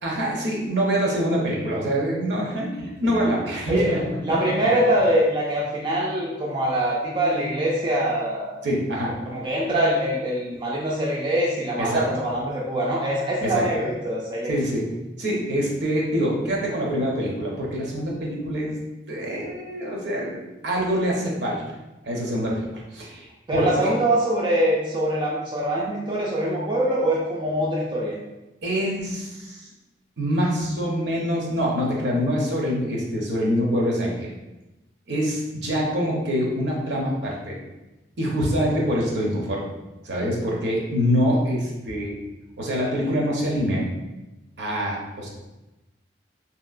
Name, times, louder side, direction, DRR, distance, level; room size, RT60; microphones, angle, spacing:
voice 1, 0.0-4.4 8.6-9.2 11.8-12.0 13.4-13.6 14.5-14.8 15.2-18.8 19.1-21.6 22.0-23.9 28.6-29.7 30.2-34.3 35.1-37.6 38.2-39.6 40.0-42.2 42.6-43.8 44.6-45.3, equal, 65° right, -3 dB, 0.7 m, -25 dB
voice 2, 3.7-8.6 9.3-14.5 23.5-28.2, right 1 dB, 25° right, -4 dB, 0.4 m, -23 dB
2.9 x 2.8 x 2.4 m, 1.0 s
head